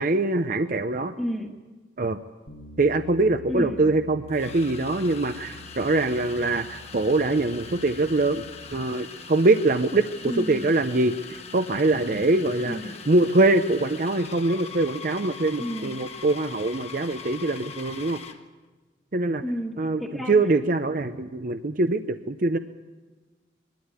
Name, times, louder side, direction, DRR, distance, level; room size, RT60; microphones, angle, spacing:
voice 1, 0.0-1.1 2.0-2.2 2.8-8.4 8.7-12.8 13.1-18.2 19.1-19.4 19.8-22.6, right 2 dB, 45° right, 9 dB, 0.7 m, -23 dB
voice 2, 1.0-1.5 3.5-3.8 10.2-10.7 12.6-13.0 15.6-15.9 19.4-20.4, equal, ahead, 0 dB, 1.5 m, -31 dB
Bass guitar, 2.5-8.7, equal, 85° left, 2.4 m, -47 dB
sound 1, 3.1-3.2 4.3-18.5, left 5 dB, 35° left, 1.3 m, -42 dB
22.0 x 13.0 x 9.8 m, 1.3 s
head